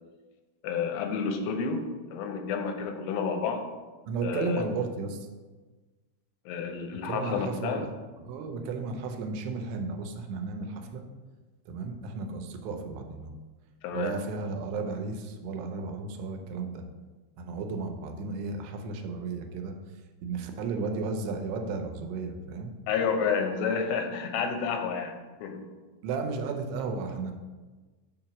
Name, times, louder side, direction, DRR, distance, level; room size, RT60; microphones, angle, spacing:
voice 1, 0.6-1.8 2.1-3.6 4.2-4.7 6.5-7.9 13.8-14.2 22.9-25.7, left 6 dB, 85° left, 5 dB, 2.8 m, -30 dB
voice 2, 4.1-5.2 7.0-7.9 8.2-11.0 11.7-13.3 13.9-16.8 17.4-19.8 20.2-22.7 26.0-27.3, right 4 dB, 85° right, 4 dB, 2.8 m, -34 dB
7.0 x 2.9 x 5.8 m, 1.3 s
omnidirectional pair, 4.7 m